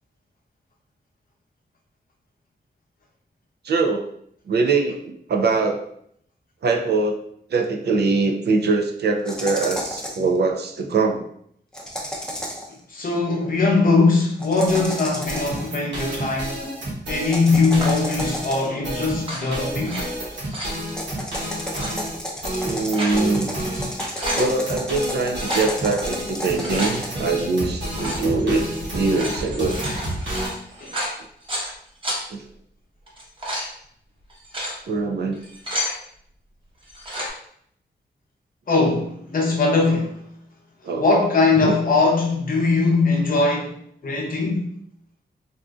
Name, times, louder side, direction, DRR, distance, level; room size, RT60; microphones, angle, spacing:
voice 1, 3.6-4.1 4.5-5.9 6.6-7.2 7.5-11.3 22.6-23.5 24.4-29.8 32.3-32.4 34.9-35.4 40.8-41.1 41.6-41.7, right 3 dB, 65° right, 0.4 m, -22 dB
sound 1, 9.2-10.3 11.7-12.7 14.4-15.7 17.2-18.8 20.9-27.1, equal, 5° left, 0.5 m, -32 dB
voice 2, 12.9-16.6 17.1-20.0 30.8-31.0 38.7-40.2 41.0-44.7, left 3 dB, 50° left, 0.7 m, -20 dB
sound 2, 14.7-30.5, equal, 85° right, 1.1 m, -30 dB
sound 3, 17.8-18.1 19.1-20.0 20.3-20.8 21.6-21.9 22.6-23.2 23.6-23.7 24.0-24.5 25.3-25.7 26.4-26.9 27.9-28.3 29.0-31.7 32.0-32.2 33.1-33.7 34.3-34.7 35.3-35.9 36.8-37.3, equal, 30° right, 0.9 m, -30 dB
3.6 x 2.5 x 2.3 m
wide cardioid pair, 140°, 18 cm